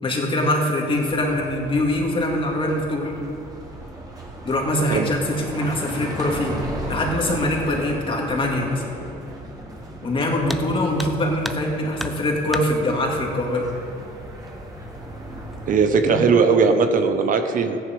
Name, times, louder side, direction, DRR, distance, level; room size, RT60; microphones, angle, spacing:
voice 1, 0.0-3.1 4.4-6.6 6.9-8.8 10.0-13.7 16.1-16.3, left 1 dB, 30° left, 0 dB, 2.3 m, -23 dB
sound 1, 0.9-15.8, right 1 dB, 20° right, 2.3 m, -36 dB
sound 2, 10.5-10.7 11.0-11.7 12.0-12.7 13.9-14.0 14.5-14.6 15.3-15.7 16.0-16.4, equal, ahead, 0.6 m, -32 dB
voice 2, 15.7-17.8, right 5 dB, 55° right, 7 dB, 0.9 m, -18 dB
14.0 x 10.0 x 5.3 m, 2.7 s
cardioid pair, 110°, 17 cm